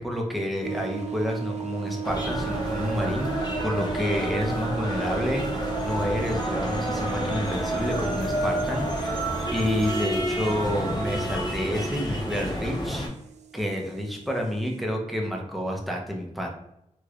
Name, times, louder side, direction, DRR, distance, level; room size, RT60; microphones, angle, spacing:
voice 1, 0.0-9.2 9.5-13.1 13.5-16.5, equal, ahead, 0 dB, 0.7 m, -29 dB
sound 1, 0.6-14.8, right 9 dB, 70° right, 0.4 m, -37 dB
sound 2, 2.0-13.1, equal, 35° left, 0.8 m, -29 dB
3.2 x 3.0 x 2.4 m, 0.81 s
wide cardioid pair, 110°, 12 cm